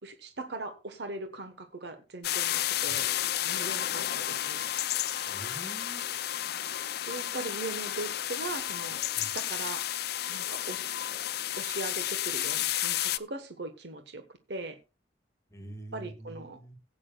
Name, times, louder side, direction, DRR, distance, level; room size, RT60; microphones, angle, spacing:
voice 1, 0.0-3.1 3.4-4.7 7.1-9.9 10.3-10.9 11.6-14.2 14.5-14.8 15.9-16.6, right 2 dB, 60° right, 7 dB, 1.2 m, -40 dB
sound 1, 2.2-13.2, left 12 dB, 55° left, 0.4 m, -32 dB
voice 2, 5.3-6.0 9.1-9.3 15.5-16.7, right 1 dB, 15° left, 2 dB, 1.6 m, -45 dB
17.5 x 8.6 x 2.3 m, 0.29 s
head